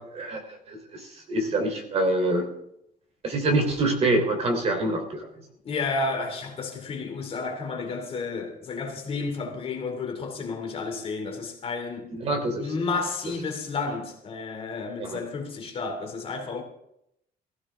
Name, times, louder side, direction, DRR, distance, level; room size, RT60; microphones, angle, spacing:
voice 1, 0.0-2.5 3.2-5.2 12.1-12.6 15.0-15.2, right 2 dB, 40° right, 3.6 m, -26 dB
voice 2, 5.6-12.1 12.6-16.6, left 4 dB, 40° left, 2.8 m, -31 dB
17.5 x 15.5 x 3.7 m
cardioid pair, 180°, 16 cm